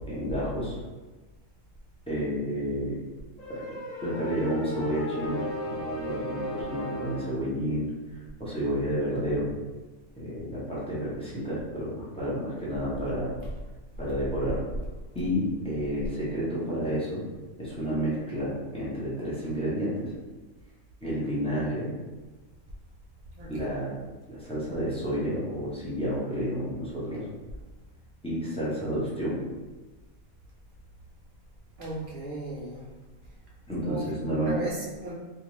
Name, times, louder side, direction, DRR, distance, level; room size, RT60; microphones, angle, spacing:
voice 1, 0.1-0.8 2.1-2.9 3.5-3.6 4.0-9.5 10.1-13.3 14.0-14.6 15.1-17.2 17.6-20.1 21.0-21.9 23.5-23.9 24.3-27.2 28.2-29.4 33.7-34.6, equal, 10° left, -9 dB, 0.4 m, -30 dB
sound 1, 3.4-7.4, left 1 dB, 65° left, 1.1 m, -35 dB
voice 2, 23.4-23.9 31.8-32.9 33.8-34.0 34.3-35.1, right 2 dB, 70° right, -5 dB, 0.5 m, -36 dB
2.5 x 2.3 x 3.1 m, 1.2 s
omnidirectional pair, 1.5 m